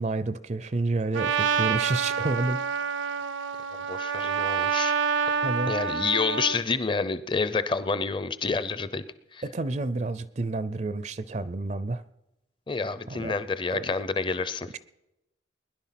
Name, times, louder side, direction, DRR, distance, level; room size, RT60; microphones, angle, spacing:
voice 1, 0.0-2.6 5.4-5.7 9.4-12.0 13.1-13.4 13.7-13.9, right 2 dB, 35° right, 16 dB, 0.4 m, -29 dB
Trumpet, 1.1-6.6, right 6 dB, 80° right, 0.6 m, -27 dB
voice 2, 3.9-5.0 5.7-9.0 9.3-9.4 12.7-14.7, left 4 dB, 25° left, 14 dB, 0.6 m, -28 dB
20.5 x 10.5 x 5.9 m, 0.92 s
head